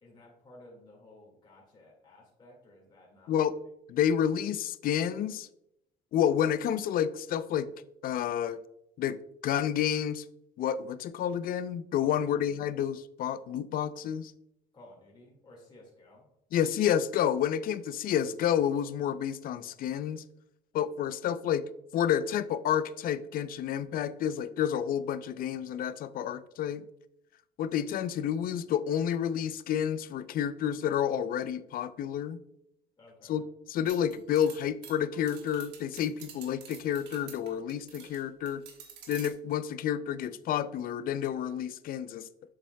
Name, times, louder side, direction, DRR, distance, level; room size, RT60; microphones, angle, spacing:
voice 1, 0.0-3.5 12.0-12.5 14.7-16.3 33.0-33.4, left 1 dB, 30° left, -3 dB, 1.9 m, -55 dB
voice 2, 3.9-5.5 6.1-7.7 8.0-8.6 9.0-9.2 9.4-10.2 10.6-14.3 16.5-20.2 20.7-21.6 21.9-26.8 27.6-32.4 33.3-33.4 33.7-38.6 39.1-42.3, left 9 dB, 60° left, 15 dB, 0.4 m, -30 dB
sound 1, 33.9-38.2 38.5-39.3, right 7 dB, 85° right, 1.2 m, -49 dB
7.3 x 7.0 x 2.2 m, 0.80 s
cardioid pair, 110°, 17 cm